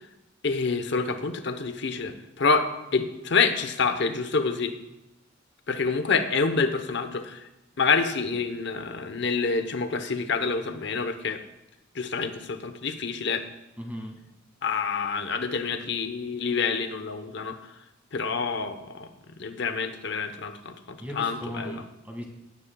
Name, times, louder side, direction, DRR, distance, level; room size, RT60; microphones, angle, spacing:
voice 1, 0.4-4.7 5.7-7.4 7.8-11.4 11.9-13.4 14.6-17.5 18.1-19.1 19.4-21.8, left 4 dB, 60° left, 8 dB, 0.9 m, -27 dB
voice 2, 13.8-14.2 21.0-22.2, equal, 10° right, 0 dB, 1.9 m, -37 dB
18.0 x 9.5 x 2.3 m, 0.95 s
head